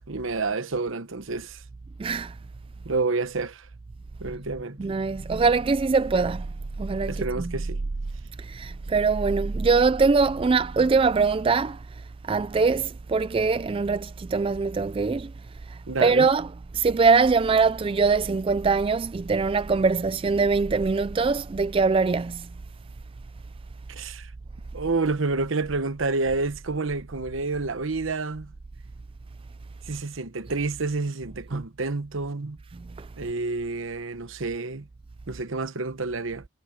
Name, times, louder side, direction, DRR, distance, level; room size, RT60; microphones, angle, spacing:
voice 1, 0.0-1.6 2.8-3.7 4.2-4.8 7.1-7.8 15.9-16.3 23.9-24.3 24.7-28.5 29.9-32.6 33.2-34.9 35.3-36.4, right 3 dB, 70° right, 1.0 m, -29 dB
voice 2, 2.0-2.4 4.8-6.5 6.8-7.5 8.4-15.3 15.7-16.5 16.7-22.5 32.7-33.1, right 4 dB, 25° right, 0.3 m, -23 dB
sound 1, 4.2-7.9, equal, 40° right, 5.6 m, -51 dB
head